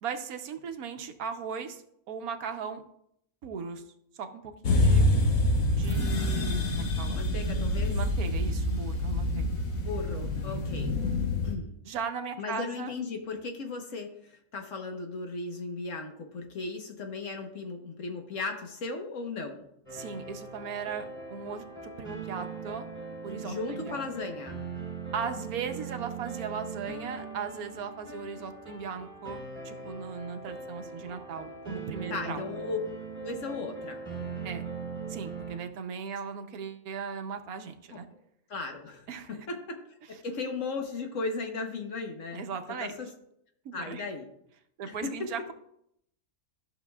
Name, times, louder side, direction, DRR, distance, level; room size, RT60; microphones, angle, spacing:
voice 1, 0.0-2.8 3.4-3.8 4.1-5.1 5.7-7.3 7.9-9.5 10.5-10.6 11.8-12.9 19.9-22.9 23.2-24.1 25.1-29.4 29.6-32.4 34.4-34.6 35.1-38.1 39.1-39.5 42.3-43.0 43.6-44.0 44.8-45.5, right 6 dB, 80° right, 7 dB, 1.2 m, -38 dB
sound 1, 4.6-11.5, left 1 dB, 75° left, 1.6 m, -26 dB
voice 2, 7.1-7.9 9.8-10.9 11.4-11.7 12.4-19.6 23.4-24.6 32.1-32.8 33.2-34.0 37.9-38.0 38.5-39.0 39.5-39.8 40.1-42.5 42.8-43.1 43.7-44.3 44.9-45.3, left 4 dB, 60° left, 3 dB, 1.4 m, -36 dB
sound 2, 19.9-35.6, right 4 dB, 20° left, 3.2 m, -40 dB
13.5 x 6.3 x 2.3 m, 0.74 s
omnidirectional pair, 1.6 m